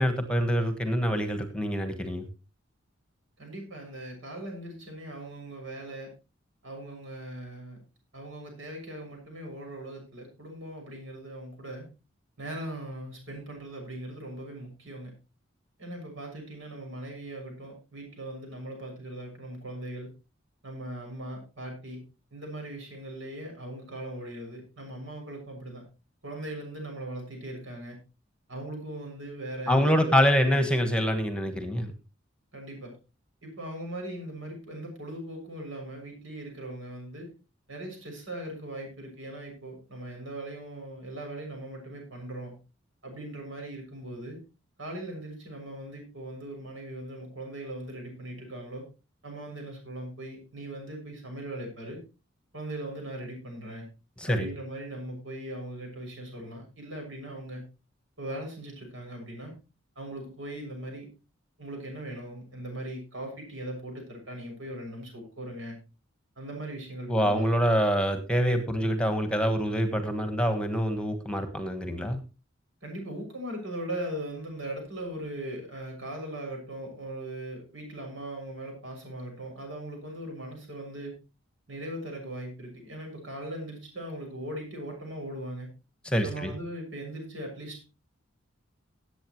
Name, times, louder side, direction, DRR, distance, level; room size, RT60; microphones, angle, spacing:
voice 1, 0.0-2.3 29.7-31.9 54.2-54.5 67.1-72.2 86.0-86.5, equal, 5° left, 8 dB, 1.3 m, -25 dB
voice 2, 3.4-6.1 6.6-7.8 8.1-11.9 12.4-15.1 15.8-20.1 20.6-22.0 22.3-25.8 26.2-28.0 28.5-30.6 32.5-32.9 33.4-37.3 37.7-42.5 43.0-44.4 44.8-48.8 49.2-52.0 52.5-53.9 54.3-57.6 58.2-59.5 59.9-61.1 61.6-65.8 66.4-67.5 72.8-81.1 81.7-85.7 86.2-87.9, right 1 dB, 75° right, 2 dB, 6.8 m, -39 dB
18.0 x 8.4 x 3.1 m, 0.30 s
head